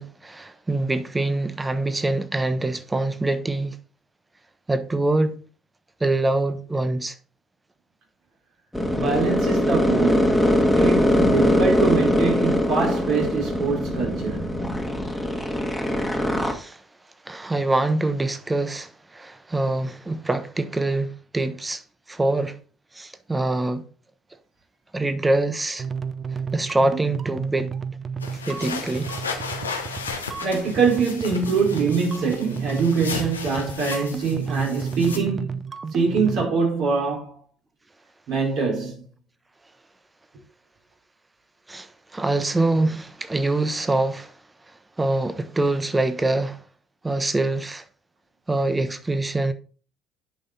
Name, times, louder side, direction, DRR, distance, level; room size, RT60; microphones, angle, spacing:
voice 1, 0.0-3.8 4.7-5.4 6.0-7.1 16.4-16.8 17.3-21.8 22.1-22.5 22.9-23.8 24.9-25.8 26.5-27.7 28.5-29.1 41.7-44.3 45.0-46.6 47.0-47.8 48.5-49.5, right 2 dB, 15° right, 1.2 m, -24 dB
sound 1, 8.7-16.5, left 1 dB, 5° left, 1.9 m, -22 dB
voice 2, 8.9-14.5 30.4-35.6 35.9-37.3 38.3-39.0, right 4 dB, 60° right, 4.8 m, -24 dB
sound 2, 25.8-36.5, right 6 dB, 35° right, 0.7 m, -32 dB
sound 3, 28.2-35.2, left 5 dB, 90° left, 1.1 m, -34 dB
10.0 x 5.6 x 4.1 m
figure-of-eight pair, 55°, 0 cm